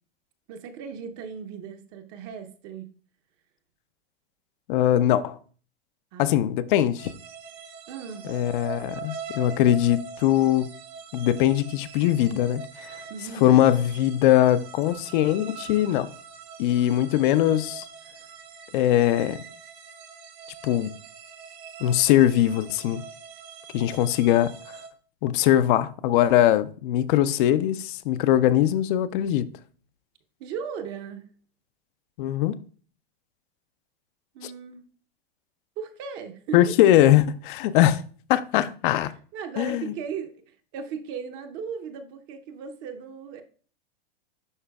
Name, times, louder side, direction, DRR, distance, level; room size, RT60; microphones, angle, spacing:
voice 1, 0.5-2.9 6.1-6.3 7.9-8.3 13.1-13.6 30.4-31.3 34.3-34.8 35.8-36.7 38.9-40.4 40.7-43.4, right 6 dB, 40° right, 0.8 m, -37 dB
voice 2, 4.7-5.4 6.2-7.1 8.3-10.7 11.1-12.6 13.4-16.1 16.6-17.9 18.7-19.4 20.6-20.9 21.8-23.0 23.7-24.5 25.2-29.5 32.2-32.6 34.4-34.5 36.5-38.0 38.3-39.1 39.6-39.9, left 12 dB, 55° left, 0.5 m, -21 dB
sound 1, 7.0-24.9, right 5 dB, 80° right, 1.8 m, -43 dB
11.0 x 3.9 x 2.3 m
hypercardioid pair, 130°, 31 cm